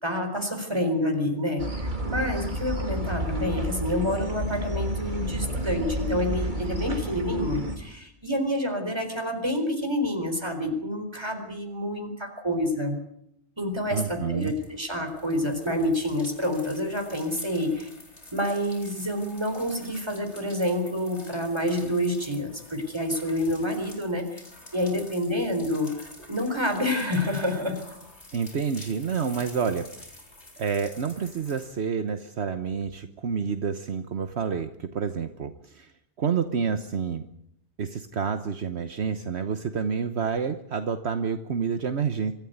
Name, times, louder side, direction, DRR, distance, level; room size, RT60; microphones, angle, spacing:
voice 1, 0.0-13.0 13.6-17.9 18.3-24.4 24.7-27.8, left 1 dB, 25° right, 5 dB, 4.4 m, -28 dB
sound 1, 1.6-7.8, right 1 dB, 45° right, 2.9 m, -30 dB
sound 2, 13.6-31.7, left 2 dB, 80° left, 4.5 m, -48 dB
voice 2, 13.9-14.5 28.3-30.1 30.6-35.9 36.2-37.2 37.8-42.3, right 6 dB, 70° right, 8 dB, 1.3 m, -29 dB
25.0 x 14.0 x 9.4 m, 0.73 s
omnidirectional pair, 1.2 m